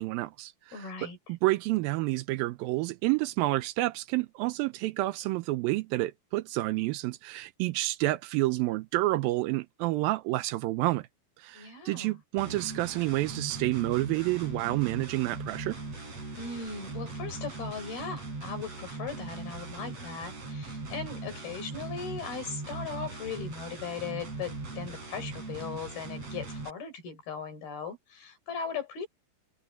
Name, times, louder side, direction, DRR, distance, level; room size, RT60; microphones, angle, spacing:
voice 1, 0.0-11.1 11.4-15.8, right 18 dB, 80° right, 2.3 m, -29 dB
voice 2, 0.7-1.2 11.5-12.2 16.4-29.1, left 5 dB, 75° left, 7.0 m, -38 dB
sound 1, 12.4-26.7, right 3 dB, 40° right, 7.3 m, -40 dB
omnidirectional pair, 4.4 m